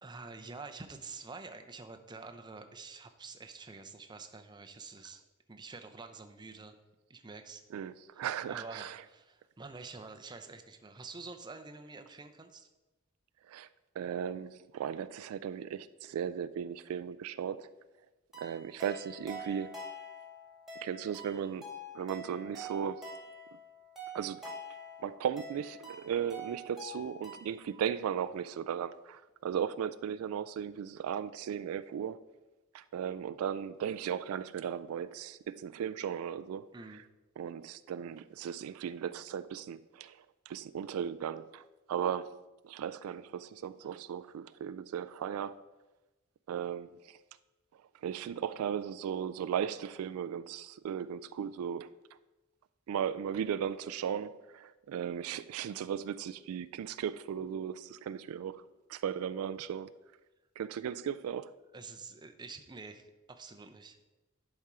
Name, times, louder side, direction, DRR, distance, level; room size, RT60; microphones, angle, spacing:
voice 1, 0.0-5.2 5.5-6.7 7.1-7.6 8.1-8.2 8.5-12.7 36.7-37.0 43.8-43.9 61.7-64.0, right 4 dB, 20° right, 0.5 m, -47 dB
voice 2, 7.7-9.0 13.5-13.7 14.0-17.7 18.4-19.8 20.8-21.7 21.9-23.1 24.1-24.6 25.0-32.2 32.7-37.0 37.4-42.4 42.6-45.6 46.5-47.2 48.0-51.9 52.9-58.6 58.9-59.9 60.6-61.5, right 8 dB, 80° right, 0.3 m, -36 dB
sound 1, 18.3-27.7, equal, ahead, 2.2 m, -46 dB
11.0 x 4.4 x 4.8 m
head